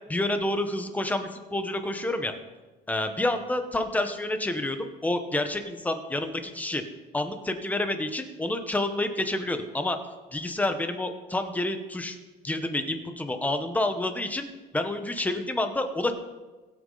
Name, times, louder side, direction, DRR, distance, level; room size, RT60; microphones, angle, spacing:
voice 1, 0.1-2.3 2.9-6.8 7.1-10.0 10.3-12.2 12.4-14.5 14.7-16.1, left 1 dB, 10° left, 7 dB, 1.0 m, -28 dB
21.5 x 8.3 x 3.9 m, 1.3 s
cardioid pair, 160°, 18 cm